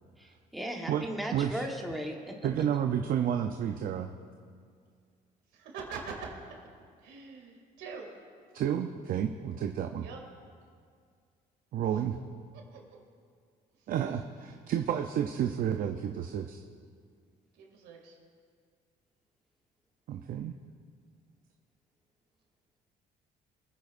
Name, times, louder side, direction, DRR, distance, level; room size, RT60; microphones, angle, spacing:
voice 1, 0.2-2.4, equal, ahead, 0 dB, 1.2 m, -37 dB
voice 2, 1.3-1.6 2.4-4.1 8.5-10.1 11.7-12.2 13.9-16.6 20.1-20.5, right 9 dB, 55° right, 5 dB, 0.6 m, -31 dB
voice 3, 5.5-6.2 7.0-8.1 10.0-10.2 12.5-12.8 13.8-13.9 17.5-18.2, right 5 dB, 85° right, 0 dB, 2.4 m, -44 dB
23.5 x 9.4 x 2.5 m, 2.1 s
cardioid pair, 110°, 17 cm